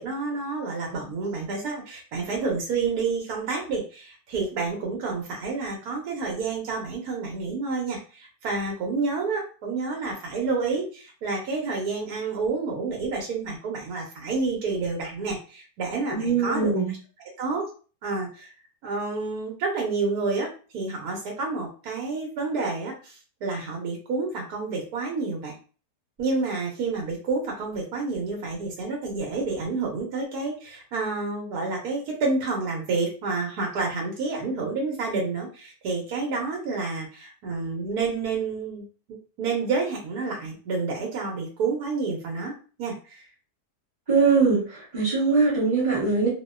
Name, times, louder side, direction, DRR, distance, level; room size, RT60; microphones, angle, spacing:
voice 1, 0.0-16.8 17.4-17.6 18.0-18.5 18.8-20.5 20.7-25.5 26.2-38.8 39.4-43.2, right 4 dB, 75° right, -1 dB, 1.2 m, -29 dB
voice 2, 16.1-16.9 44.1-46.3, right 4 dB, 35° right, -4 dB, 1.1 m, -22 dB
2.7 x 2.1 x 2.2 m, 0.37 s
omnidirectional pair, 1.7 m